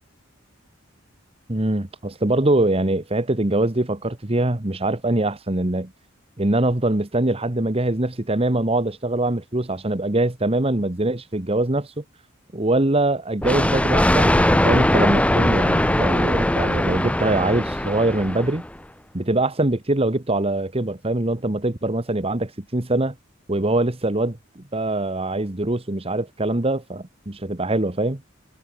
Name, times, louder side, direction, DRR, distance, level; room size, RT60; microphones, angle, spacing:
voice 1, 1.5-5.9 6.4-12.0 12.5-18.6 19.1-23.1 23.5-28.2, right 2 dB, 30° right, 1.4 m, -23 dB
Thunder, 13.4-18.8, left 1 dB, 5° left, 1.1 m, -20 dB
head